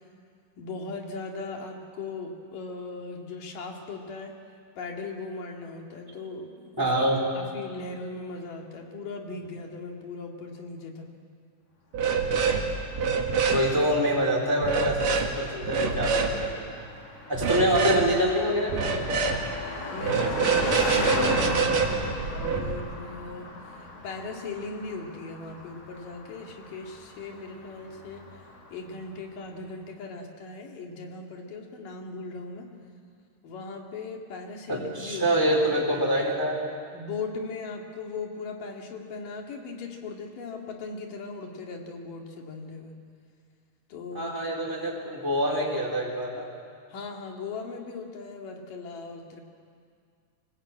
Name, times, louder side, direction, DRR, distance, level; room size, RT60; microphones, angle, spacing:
voice 1, 0.6-4.4 4.8-6.9 7.3-11.1 19.5-28.4 28.7-32.7 33.4-35.3 36.9-42.9 43.9-44.3 46.9-49.4, left 3 dB, 90° left, 1 dB, 3.9 m, -38 dB
voice 2, 6.8-7.2 13.5-16.9 17.3-19.1 34.7-36.6 44.1-46.5, equal, 5° right, -3 dB, 4.1 m, -26 dB
sound 1, 11.9-12.6 12.9-13.6 14.6-15.3 15.6-16.3 17.3-18.1 18.7-19.4 20.0-22.7, right 5 dB, 85° right, 3.5 m, -26 dB
Car passing by, 12.7-29.2, left 2 dB, 50° left, 3.5 m, -37 dB
24.5 x 19.5 x 8.8 m, 2.2 s
omnidirectional pair, 3.7 m